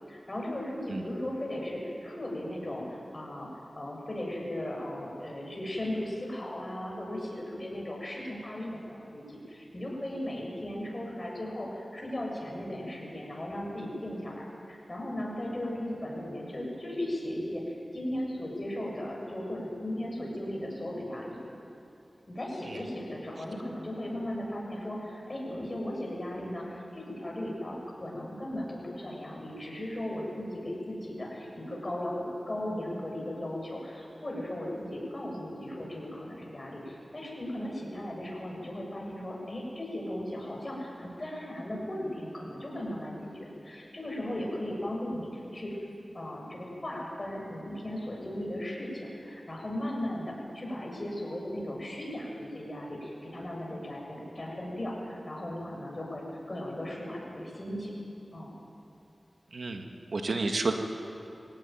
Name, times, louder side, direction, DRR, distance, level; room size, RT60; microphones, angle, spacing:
voice 1, 0.1-21.4 22.3-45.8 46.1-57.9 58.3-58.6, left 1 dB, 35° left, -2 dB, 7.4 m, -37 dB
voice 2, 59.5-60.7, right 3 dB, 80° right, 4 dB, 1.9 m, -31 dB
23.5 x 17.5 x 9.3 m, 2.7 s
wide cardioid pair, 55°, 0 cm